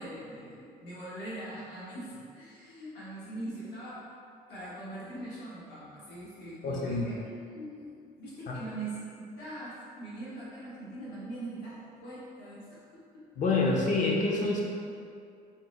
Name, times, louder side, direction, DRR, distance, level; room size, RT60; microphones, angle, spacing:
voice 1, 0.0-4.0 4.5-7.9 8.2-13.3, right 2 dB, 85° left, -9 dB, 1.2 m, -42 dB
voice 2, 6.6-7.1 8.5-8.6 13.4-14.6, left 3 dB, 50° left, -2 dB, 0.7 m, -27 dB
3.7 x 2.1 x 4.1 m, 2.4 s
cardioid pair, 110°, 17 cm